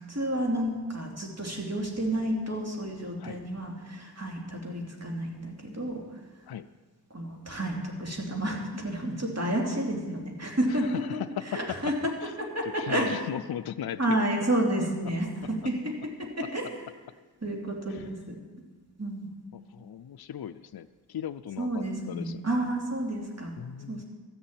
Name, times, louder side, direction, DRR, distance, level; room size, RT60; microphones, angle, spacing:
voice 1, 0.0-6.2 7.1-11.2 11.5-12.1 12.4-13.1 14.0-16.7 17.4-18.4 19.0-19.3 21.6-23.5 23.9-24.0, right 1 dB, 40° right, 0 dB, 2.8 m, -30 dB
voice 2, 10.9-11.6 11.9-12.0 12.2-12.3 12.7-14.2 19.5-22.4 23.6-24.0, left 9 dB, 60° left, 10 dB, 0.5 m, -37 dB
13.0 x 7.2 x 8.9 m, 1.3 s
wide cardioid pair, 55°, 42 cm